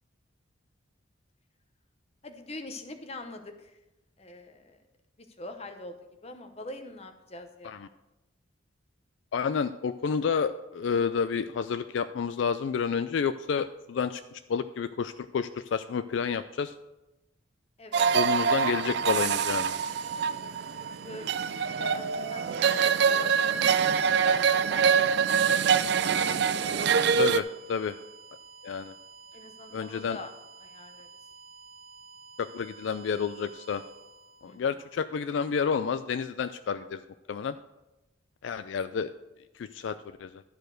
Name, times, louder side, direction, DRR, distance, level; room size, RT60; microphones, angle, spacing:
voice 1, 2.2-3.8 4.2-4.8 5.4-6.0 6.2-7.8 17.8-18.1 21.0-24.4 24.7-25.7 26.1-26.9 29.3-30.3 30.6-31.1 34.4-34.6, left 2 dB, 30° left, 6 dB, 0.9 m, -44 dB
voice 2, 9.3-14.2 14.5-16.7 18.1-19.7 27.2-28.0 28.6-28.9 29.7-30.2 32.4-33.8 34.4-37.0 37.3-37.5 38.4-39.1 39.6-40.4, left 6 dB, 70° left, 11 dB, 0.3 m, -30 dB
sound 1, 17.9-27.4, right 6 dB, 60° right, 0.4 m, -25 dB
sound 2, 19.4-35.2, right 5 dB, 30° right, 1.1 m, -51 dB
12.0 x 4.4 x 6.4 m, 0.97 s
head